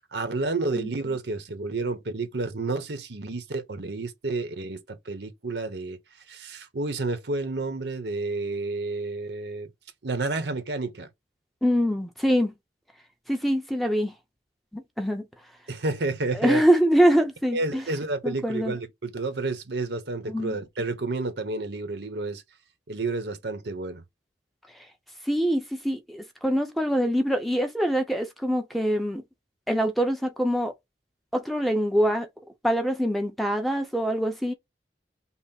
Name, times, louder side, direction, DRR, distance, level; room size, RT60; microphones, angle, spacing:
voice 1, 0.0-6.0 6.3-9.7 10.0-11.1 15.7-16.6 17.5-22.4 22.9-24.0, right 3 dB, 75° right, 0.9 m, -30 dB
voice 2, 11.6-12.5 13.3-14.1 14.7-15.3 16.3-17.8 18.2-18.7 20.3-20.6 25.3-29.2 29.7-30.7 31.3-32.3 32.6-34.5, equal, ahead, 0.6 m, -24 dB
5.5 x 2.1 x 4.1 m
head